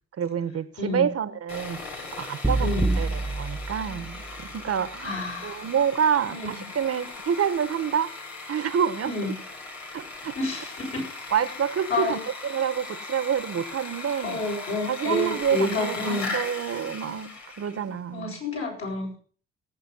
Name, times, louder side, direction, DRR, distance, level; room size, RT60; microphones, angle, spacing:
voice 1, 0.2-8.1 8.5-9.1 9.9-10.4 11.3-14.5 14.9-18.4, right 8 dB, 55° right, 1.4 m, -28 dB
voice 2, 0.8-1.1 2.6-2.9 5.0-5.7 6.3-6.5 9.0-9.3 10.4-11.1 11.9-12.2 14.2-16.3 18.1-19.2, left 2 dB, 50° left, 7.5 m, -29 dB
Sawing, 1.5-17.9, left 3 dB, 70° left, 4.1 m, -38 dB
sound 1, 2.4-4.7, right 2 dB, 5° right, 0.8 m, -28 dB
18.5 x 8.7 x 5.6 m
hypercardioid pair, 50°, 29 cm